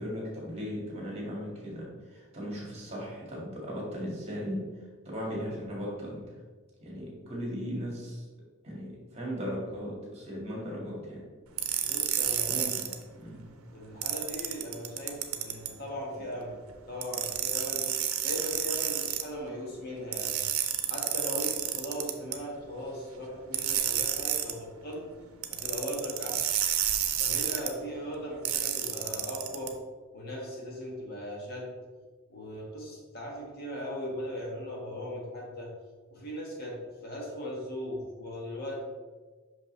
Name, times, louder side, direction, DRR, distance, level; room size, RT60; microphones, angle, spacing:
voice 1, 0.0-4.6 5.1-6.2 6.8-8.2 8.6-11.2 12.5-12.8 13.2-13.4, equal, 30° right, -4 dB, 1.9 m, -37 dB
sound 1, 11.6-12.9 14.0-15.7 17.0-19.2 20.1-22.4 23.5-24.5 25.4-27.7 28.4-29.7, right 10 dB, 90° right, 0.6 m, -30 dB
voice 2, 11.8-12.9 13.7-16.6 16.9-17.9 18.2-20.4 20.9-25.1 25.5-26.5 27.2-29.7 30.1-31.7 32.3-35.7 36.1-38.8, equal, 50° left, -2 dB, 1.4 m, -38 dB
5.8 x 5.4 x 3.1 m, 1.4 s
head